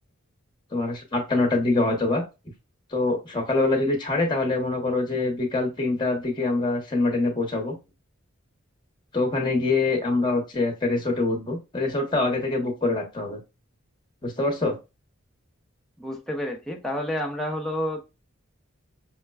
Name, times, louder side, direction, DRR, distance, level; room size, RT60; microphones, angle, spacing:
voice 1, 0.7-2.2 2.9-7.7 9.1-13.4 14.2-14.7, left 2 dB, 20° left, 0 dB, 0.9 m, -24 dB
voice 2, 16.0-18.0, left 1 dB, ahead, 0 dB, 0.6 m, -29 dB
5.7 x 2.2 x 2.2 m, 0.26 s
head